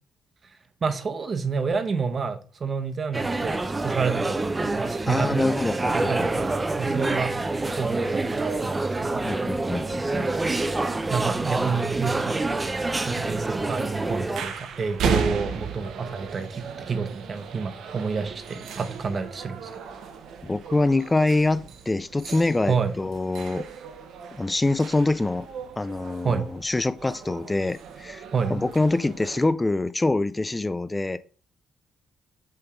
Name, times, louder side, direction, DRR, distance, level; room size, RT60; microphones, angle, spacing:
voice 1, 0.8-5.4 5.9-7.4 7.8-9.4 11.1-12.6 13.1-19.7 22.7-22.9 26.2-26.5 28.3-28.6, right 5 dB, 40° right, 1.0 m, -29 dB
sound 1, 3.1-14.4, right 2 dB, 20° right, 0.6 m, -27 dB
voice 2, 5.1-6.3 9.2-10.3 20.4-23.7 24.4-25.5 25.8-28.2 28.5-31.2, left 2 dB, 15° left, 0.3 m, -25 dB
sound 2, 12.5-29.5, right 6 dB, 75° right, 1.1 m, -36 dB
7.6 x 3.5 x 4.5 m
cardioid pair, 90°, 0 cm